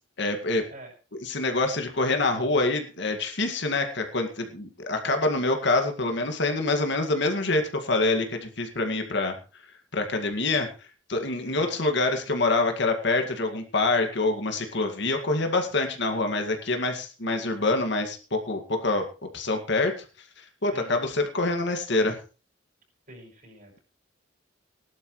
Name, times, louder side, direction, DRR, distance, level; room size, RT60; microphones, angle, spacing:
voice 1, 0.2-0.6 1.2-9.4 9.9-19.1 19.3-20.0 20.6-22.2, left 2 dB, 65° left, 5 dB, 2.1 m, -26 dB
voice 2, 11.4-11.8 20.7-20.9 23.1-23.8, right 1 dB, 45° right, 1 dB, 5.8 m, -46 dB
18.0 x 12.0 x 3.2 m, 0.35 s
head